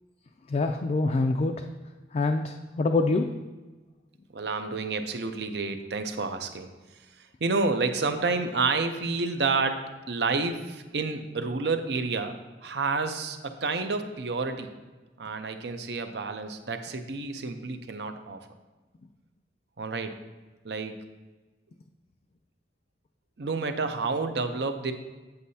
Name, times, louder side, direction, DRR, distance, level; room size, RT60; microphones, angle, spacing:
voice 1, 0.5-1.6 2.1-3.3, left 3 dB, 40° left, 4 dB, 0.3 m, -25 dB
voice 2, 4.3-6.7 7.2-12.4 12.6-14.7 15.2-18.4 19.8-20.2 20.6-21.1 23.4-24.9, right 4 dB, 65° right, 7 dB, 0.6 m, -29 dB
8.5 x 8.0 x 2.7 m, 1.2 s
head